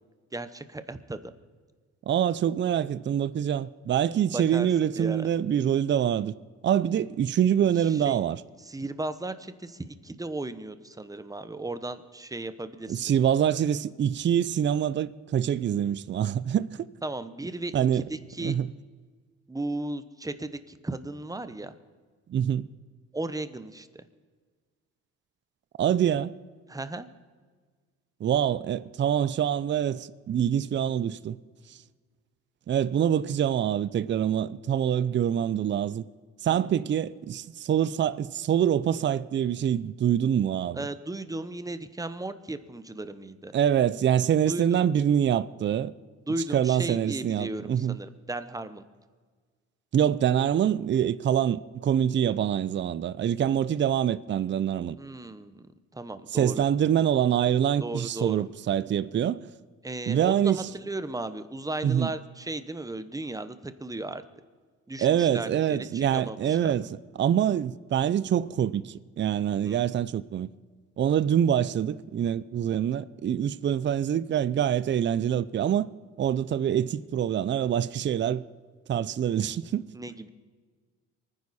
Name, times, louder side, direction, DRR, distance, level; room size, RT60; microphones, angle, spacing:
voice 1, 0.3-1.3 4.3-4.7 5.0-5.3 7.7-8.2 8.6-13.1 17.0-18.6 19.5-21.7 23.1-24.0 26.7-27.1 36.5-36.6 40.7-43.5 44.4-44.9 46.3-48.8 55.0-56.6 57.8-58.5 59.8-64.2 64.9-66.7 69.6-69.8 79.9-80.3, right 2 dB, 10° right, 0.9 m, -36 dB
voice 2, 2.1-6.3 6.6-8.4 12.9-16.9 17.7-18.0 18.4-18.7 22.3-22.7 25.8-26.3 28.2-31.4 32.7-36.0 36.4-40.8 43.5-45.9 46.5-47.9 49.9-55.0 56.3-59.5 60.1-60.6 61.8-62.1 65.0-66.9 67.2-70.5 71.0-75.9 76.2-78.4 78.9-79.9, right 9 dB, 40° right, 0.5 m, -25 dB
24.0 x 9.9 x 4.2 m
cardioid pair, 90°, 30 cm